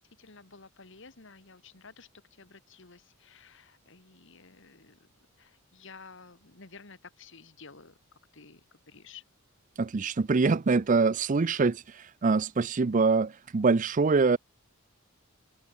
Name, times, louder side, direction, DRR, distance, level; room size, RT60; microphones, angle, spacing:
voice 1, 0.0-5.0 5.4-8.0 8.3-8.6 8.9-9.2, left 4 dB, 60° left, 2.1 m, -52 dB
voice 2, 9.8-14.4, right 4 dB, 40° right, 0.5 m, -24 dB
head